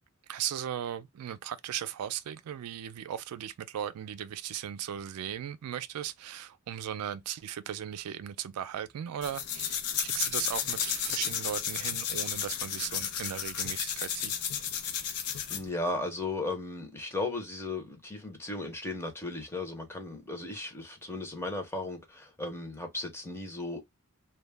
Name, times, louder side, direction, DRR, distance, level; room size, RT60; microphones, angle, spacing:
voice 1, 0.3-14.4, right 10 dB, 85° right, 0.3 m, -37 dB
sound 1, 9.2-15.7, left 8 dB, 85° left, 0.5 m, -33 dB
voice 2, 15.5-23.8, left 2 dB, 10° left, 0.6 m, -36 dB
2.2 x 2.0 x 3.2 m
head